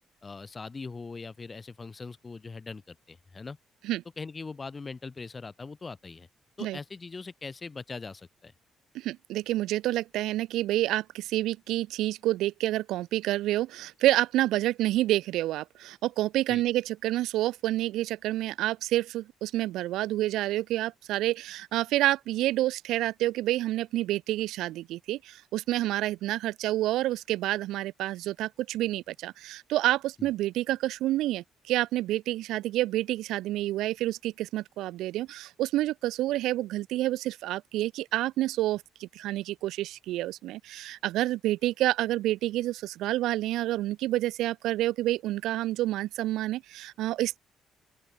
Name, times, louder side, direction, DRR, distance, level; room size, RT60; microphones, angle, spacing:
voice 1, 0.2-3.6 4.2-6.3 6.6-8.5 16.5-16.6 30.2-30.3, left 4 dB, 30° left, 1.1 m, -41 dB
voice 2, 8.9-47.4, right 15 dB, 85° right, 0.3 m, -28 dB
open air
cardioid pair, 80°, 0 cm